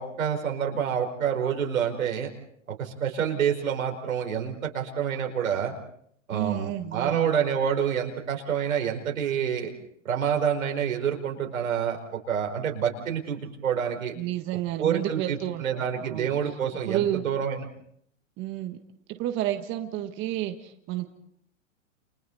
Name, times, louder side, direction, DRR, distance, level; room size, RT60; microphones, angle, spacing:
voice 1, 0.0-2.3 2.8-5.7 6.3-9.7 10.1-14.2 14.8-17.6, right 8 dB, 90° right, 2 dB, 5.2 m, -27 dB
voice 2, 6.3-7.3 14.2-16.3 16.9-17.2 18.4-18.8 19.1-21.1, right 13 dB, 30° right, 6 dB, 1.5 m, -31 dB
29.5 x 28.5 x 4.2 m, 0.67 s
hypercardioid pair, 145°, 40 cm